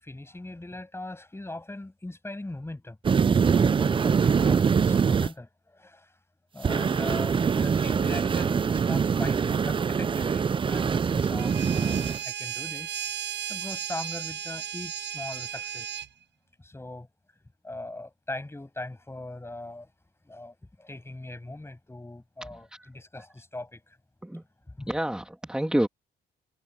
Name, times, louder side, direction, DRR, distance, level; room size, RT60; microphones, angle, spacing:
voice 1, 0.0-3.0 3.4-6.1 6.5-13.0 13.5-16.0 16.6-17.1 17.6-19.9 20.2-22.7 22.9-24.0 24.7-24.9, left 2 dB, 10° left, 7.2 m, -40 dB
sound 1, 3.0-5.3 6.6-12.2, right 6 dB, 25° right, 0.4 m, -24 dB
sound 2, 11.4-16.1, right 9 dB, 65° right, 6.5 m, -35 dB
voice 2, 22.4-22.9 24.2-24.4 24.9-25.9, right 1 dB, 5° right, 2.0 m, -29 dB
cardioid pair, 90°, 20 cm